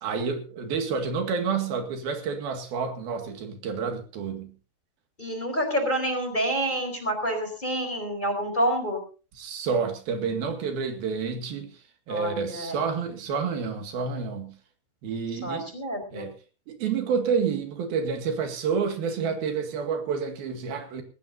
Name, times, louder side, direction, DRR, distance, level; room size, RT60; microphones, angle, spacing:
voice 1, 0.0-4.5 9.3-11.7 12.1-14.5 15.0-15.7 16.1-16.3 16.7-21.0, right 5 dB, 85° right, 4.0 m, -29 dB
voice 2, 5.2-9.0 12.1-12.8 15.4-16.2, right 1 dB, 10° left, 4.3 m, -28 dB
19.5 x 18.0 x 2.7 m
omnidirectional pair, 4.2 m